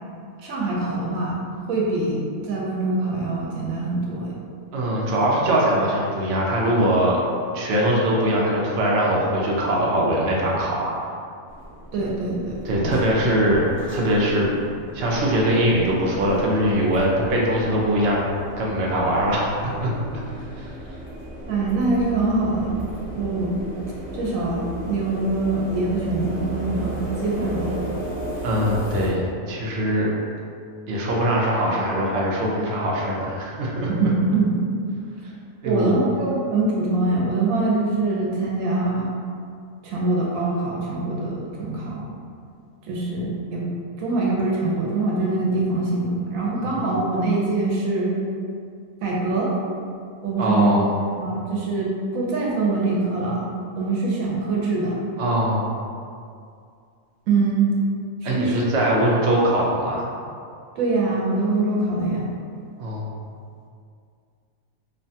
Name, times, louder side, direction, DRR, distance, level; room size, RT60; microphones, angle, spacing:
voice 1, 0.4-1.4 1.7-4.4 11.9-13.0 21.5-22.8 23.1-23.5 24.1-27.8 33.9-34.7 35.6-39.1 39.8-42.1 42.9-43.7 44.0-48.2 49.0-49.5 50.2-50.8 51.2-53.4 53.8-55.0 57.3-57.7 58.2-58.6 60.8-62.3, right 3 dB, 90° right, -3 dB, 1.0 m, -24 dB
voice 2, 4.7-7.2 7.5-10.9 12.6-13.6 13.9-14.6 14.9-18.3 18.6-19.5 19.8-19.9 20.6-20.7 28.4-30.1 30.9-33.9 35.6-36.0 46.6-46.7 50.4-50.9 55.2-55.7 58.2-60.1 62.8-63.1, right 1 dB, 65° right, -4 dB, 0.8 m, -22 dB
sound 1, 11.5-29.1, right 1 dB, 15° left, 0.4 m, -35 dB
3.1 x 2.1 x 2.7 m, 2.3 s
omnidirectional pair, 1.4 m